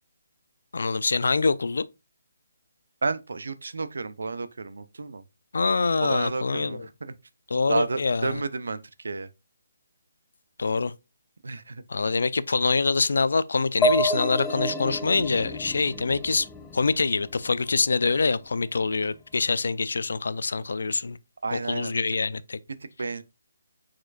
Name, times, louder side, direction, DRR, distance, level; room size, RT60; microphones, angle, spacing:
voice 1, 0.7-1.9 5.5-6.9 7.5-8.4 10.6-10.9 11.9-16.5 16.7-21.2 21.5-22.6, left 4 dB, 75° left, 0.4 m, -25 dB
voice 2, 3.0-5.2 6.0-7.1 7.7-9.3 11.4-11.8 21.4-22.0 23.0-23.2, right 3 dB, 80° right, 0.5 m, -31 dB
sound 1, 13.8-17.5, equal, 10° left, 0.4 m, -29 dB
4.7 x 4.3 x 2.4 m
hypercardioid pair, 170°, 0 cm